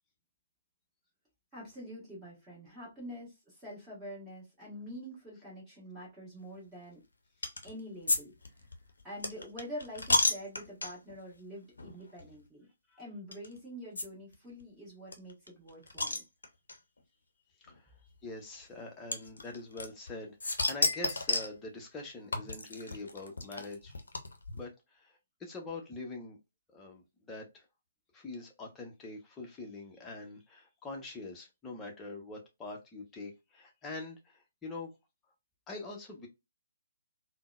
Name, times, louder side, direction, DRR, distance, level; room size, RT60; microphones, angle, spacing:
voice 1, 1.5-7.0 7.6-8.6 9.0-12.7 13.0-16.2, equal, 10° right, 1.4 m, -46 dB
sound 1, 7.4-7.7 8.1-8.2 8.4-11.2 11.8-11.9 12.2-12.3 13.3-13.5 14.0-14.1 14.3-14.4 14.6-14.7 15.1-16.8 17.7-17.8 19.1-20.1 20.4-21.6 22.3-24.6, left 2 dB, 65° left, 0.6 m, -32 dB
voice 2, 17.7-23.9 24.5-26.4 26.7-27.7 28.1-34.9 35.7-36.3, left 3 dB, 10° left, 0.8 m, -44 dB
3.6 x 2.1 x 2.4 m
figure-of-eight pair, 130°, 0 cm